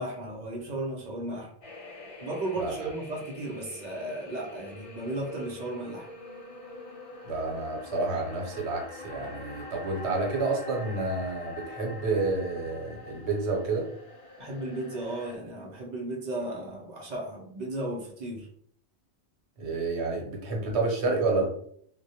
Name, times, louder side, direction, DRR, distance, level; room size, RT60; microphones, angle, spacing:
voice 1, 0.0-1.5 2.2-6.1 14.4-18.5, right 1 dB, 50° right, -1 dB, 0.6 m, -35 dB
sound 1, 1.6-15.4, left 3 dB, 50° left, 0.4 m, -45 dB
voice 2, 7.2-13.9 19.6-21.5, right 3 dB, 80° right, 0 dB, 1.0 m, -29 dB
2.2 x 2.1 x 2.7 m, 0.64 s
omnidirectional pair, 1.1 m